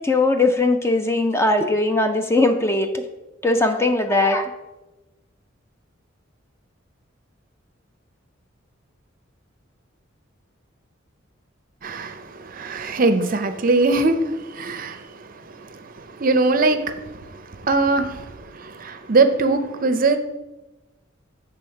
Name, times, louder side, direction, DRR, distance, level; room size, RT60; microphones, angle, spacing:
voice 1, 0.0-3.0 3.4-4.5, left 2 dB, 15° left, 6 dB, 0.5 m, -19 dB
voice 2, 11.8-20.2, right 3 dB, 45° right, 9 dB, 0.6 m, -22 dB
8.0 x 3.6 x 5.7 m, 1.1 s
head